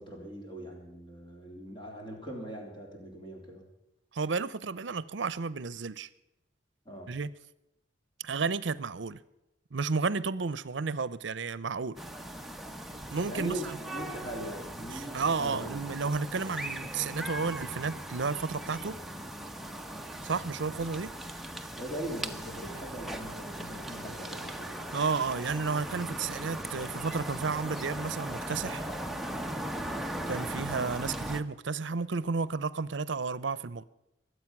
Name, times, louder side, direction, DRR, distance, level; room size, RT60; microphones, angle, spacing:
voice 1, 0.0-3.6 6.9-7.1 13.3-15.8 21.8-24.8, right 1 dB, 25° left, 3.6 m, -41 dB
voice 2, 4.1-6.1 7.1-7.3 8.2-9.2 9.7-12.0 13.1-13.8 14.9-19.0 20.2-21.1 24.9-28.9 30.3-33.8, right 4 dB, 75° right, 0.7 m, -32 dB
sound 1, 12.0-31.4, right 1 dB, ahead, 0.8 m, -39 dB
22.5 x 8.1 x 6.0 m
head